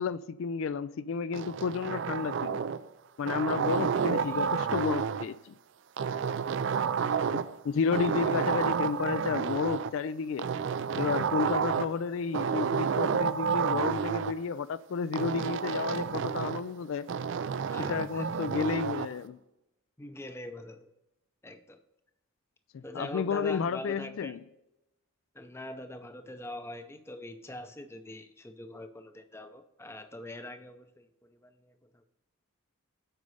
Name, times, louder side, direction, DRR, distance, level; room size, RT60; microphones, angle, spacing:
voice 1, 0.0-2.6 3.2-5.6 7.3-10.5 11.0-17.1 17.8-19.4 22.7-24.4, left 5 dB, 65° left, 0.3 m, -32 dB
sound 1, 1.3-2.9 3.3-5.3 6.0-7.6 7.9-9.9 10.4-12.0 12.3-14.3 15.1-16.7 17.1-19.1, right 6 dB, 60° right, 0.3 m, -30 dB
voice 2, 17.7-18.3 20.0-20.9 21.4-21.8 22.8-24.4 25.3-32.0, left 1 dB, 10° left, 0.6 m, -43 dB
8.0 x 5.3 x 5.4 m
head